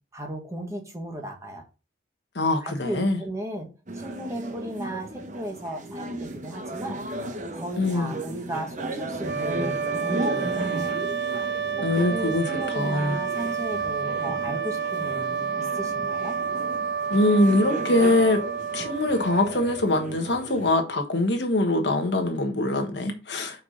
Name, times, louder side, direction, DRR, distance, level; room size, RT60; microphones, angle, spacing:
voice 1, 0.1-1.6 2.6-7.0 7.5-11.0 11.8-16.3, right 1 dB, 15° right, 1.6 m, -36 dB
voice 2, 2.3-3.2 7.8-8.1 11.8-13.2 17.1-18.4 18.7-23.6, left 2 dB, 70° left, 1.3 m, -23 dB
sound 1, 3.9-20.7, right 2 dB, 45° right, 1.0 m, -35 dB
sound 2, 9.2-20.1, right 6 dB, 75° right, 0.7 m, -30 dB
5.4 x 4.7 x 5.1 m
head